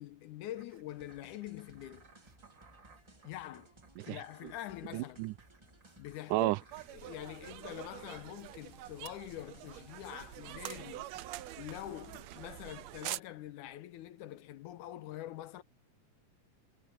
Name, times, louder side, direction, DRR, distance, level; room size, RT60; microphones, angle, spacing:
voice 1, 0.0-2.1 3.2-3.7 4.0-5.3 6.0-6.5 6.9-11.1 11.6-15.6, left 13 dB, 80° left, 2.3 m, -45 dB
sound 1, 0.6-8.2 9.0-9.1, right 5 dB, 35° right, 3.2 m, -62 dB
sound 2, 0.9-12.5, right 2 dB, 20° right, 0.8 m, -62 dB
voice 2, 4.9-5.3 6.3-6.6, right 19 dB, 90° right, 2.1 m, -31 dB
sound 3, 6.7-13.2, right 15 dB, 75° right, 1.7 m, -45 dB
omnidirectional pair, 3.6 m